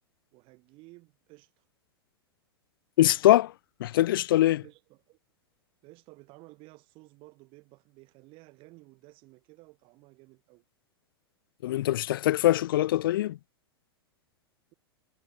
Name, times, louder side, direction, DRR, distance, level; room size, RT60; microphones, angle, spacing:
voice 1, 0.3-1.7 4.6-5.2 5.8-10.6, right 23 dB, 40° right, 3.7 m, -54 dB
voice 2, 3.0-3.5 3.8-4.6 11.6-13.4, left 14 dB, 60° left, 0.6 m, -23 dB
figure-of-eight pair, 95°, 13 cm